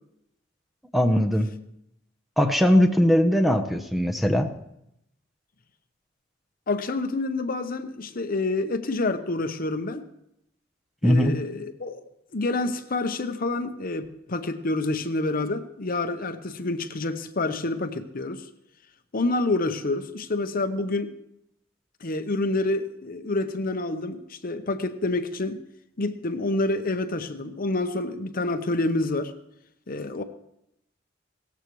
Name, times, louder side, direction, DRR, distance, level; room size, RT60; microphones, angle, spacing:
voice 1, 0.9-1.5 2.4-4.5 11.0-11.4, equal, ahead, 6 dB, 0.8 m, -20 dB
voice 2, 6.7-10.1 11.0-12.0 12.3-18.5 19.1-21.1 22.0-25.6 26.0-29.3 29.9-30.2, left 2 dB, 50° left, 9 dB, 0.8 m, -28 dB
17.5 x 14.0 x 3.1 m, 0.80 s
head